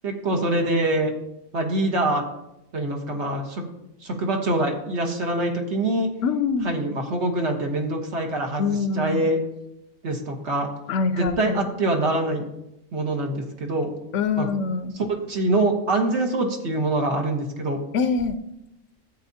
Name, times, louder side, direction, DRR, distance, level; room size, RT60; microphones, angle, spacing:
voice 1, 0.0-1.1 1.5-2.2 2.7-3.6 4.0-6.1 6.6-9.4 10.0-10.7 11.1-12.4 12.9-13.9 14.4-14.5 15.0-17.8, right 2 dB, 55° right, 2 dB, 1.5 m, -24 dB
voice 2, 6.2-6.7 8.6-9.3 10.9-11.7 14.1-15.0 17.9-18.4, left 5 dB, 70° left, 10 dB, 0.9 m, -24 dB
13.0 x 8.5 x 2.7 m, 0.87 s
omnidirectional pair, 1.4 m